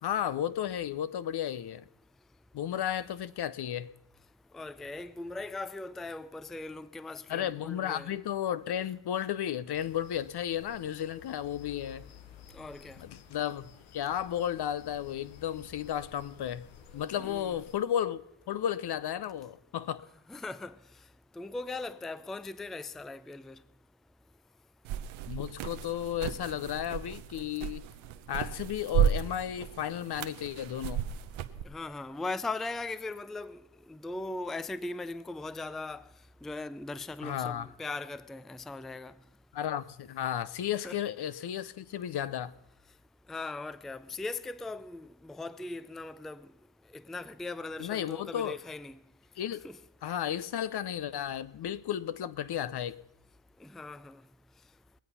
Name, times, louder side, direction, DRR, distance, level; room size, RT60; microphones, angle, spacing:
voice 1, 0.0-1.8 2.5-3.9 7.3-12.0 13.0-16.7 16.9-20.0 25.3-27.9 28.3-31.1 37.2-37.7 39.5-42.5 47.8-48.5 49.4-49.7 50.0-53.0, left 10 dB, 55° left, 0.7 m, -33 dB
voice 2, 4.5-8.1 12.5-13.0 17.2-17.6 20.3-20.8 21.4-23.6 31.6-33.6 33.9-36.1 36.4-39.1 40.8-41.0 43.3-46.5 46.9-49.0 49.6-49.8 53.6-54.2, left 3 dB, ahead, 0.5 m, -39 dB
sound 1, 9.7-17.8, left 8 dB, 70° left, 1.1 m, -53 dB
sound 2, 24.8-31.6, right 9 dB, 75° right, 0.9 m, -33 dB
21.5 x 8.0 x 5.6 m
hypercardioid pair, 45°, 48 cm